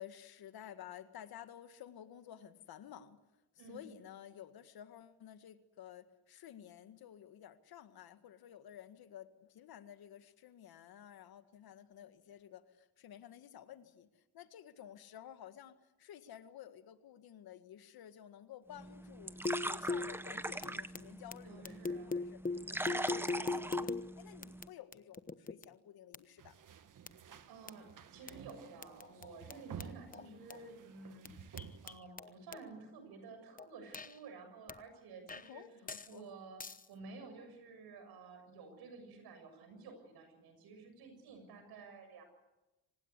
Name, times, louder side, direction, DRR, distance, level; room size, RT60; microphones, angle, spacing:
voice 1, 0.0-3.2 3.7-19.4 19.6-22.4 22.7-26.6 30.2-30.4 35.5-36.3, left 10 dB, 75° left, 10 dB, 1.9 m, -53 dB
voice 2, 3.6-3.9 21.4-22.1 27.2-35.6 36.1-36.6 36.9-42.2, right 4 dB, 85° right, 7 dB, 7.0 m, -52 dB
sound 1, 18.7-24.7, right 1 dB, 5° right, 1.1 m, -42 dB
sound 2, 19.3-20.2 20.6-21.4 21.6-24.1 24.4-25.7 26.1-26.2 27.1-27.2 27.4-27.5 27.7-27.8 28.3-28.5 28.8-30.6 31.2-32.7 33.6-34.2 34.7-34.8 35.3-35.5 35.9-36.1 36.6-36.9, left 3 dB, 20° left, 1.1 m, -40 dB
sound 3, 26.4-32.0, right 8 dB, 55° right, 1.7 m, -52 dB
25.5 x 19.0 x 8.3 m, 1.0 s
cardioid pair, 80°, 37 cm